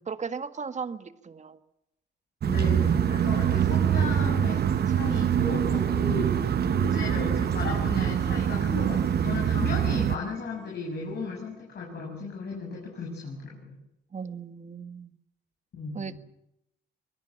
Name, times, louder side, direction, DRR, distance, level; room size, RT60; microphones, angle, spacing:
voice 1, 0.1-1.6 14.1-15.1 15.9-16.2, right 6 dB, 35° right, 11 dB, 1.8 m, -37 dB
voice 2, 2.4-13.8 15.7-16.2, left 3 dB, 55° left, -1 dB, 7.1 m, -35 dB
sound 1, 2.4-10.2, right 9 dB, 55° right, 1.1 m, -24 dB
sound 2, 2.6-11.6, left 8 dB, 70° left, 4.6 m, -46 dB
23.5 x 21.0 x 7.3 m, 0.82 s
cardioid pair, 90°, 20 cm